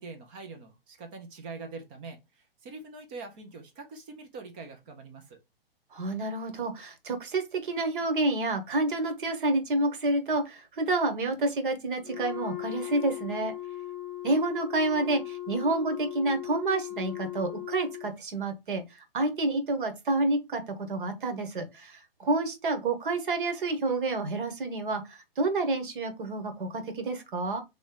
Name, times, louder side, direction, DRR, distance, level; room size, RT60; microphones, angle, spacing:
voice 1, 0.0-5.4, right 3 dB, 10° right, 0.3 m, -44 dB
voice 2, 5.9-13.5 14.2-18.8 19.1-20.6 20.9-27.6, right 2 dB, 60° right, 1.2 m, -29 dB
Wind instrument woodwind instrument, 12.0-18.1, left 13 dB, 80° right, 1.9 m, -38 dB
3.1 x 3.0 x 3.6 m
figure-of-eight pair, 125°, 30 cm